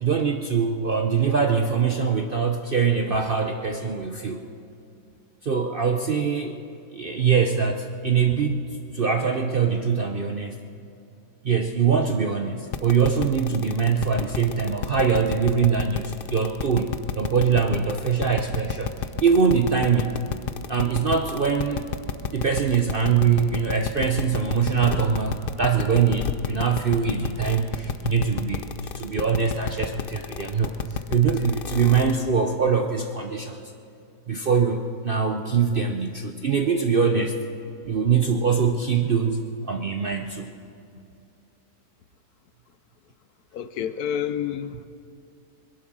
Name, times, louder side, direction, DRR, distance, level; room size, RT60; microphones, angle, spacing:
voice 1, 0.0-4.4 5.4-6.5 6.9-8.6 8.9-10.5 11.4-16.9 17.1-18.9 19.2-20.1 20.7-21.9 22.3-33.6 34.3-37.3 37.9-40.5, right 6 dB, 50° right, 4 dB, 0.6 m, -23 dB
sound 1, 12.7-32.2, left 7 dB, 85° left, 0.4 m, -30 dB
voice 2, 43.5-44.9, left 9 dB, 70° left, 12 dB, 1.1 m, -29 dB
21.0 x 11.0 x 6.2 m, 2.5 s
omnidirectional pair, 1.8 m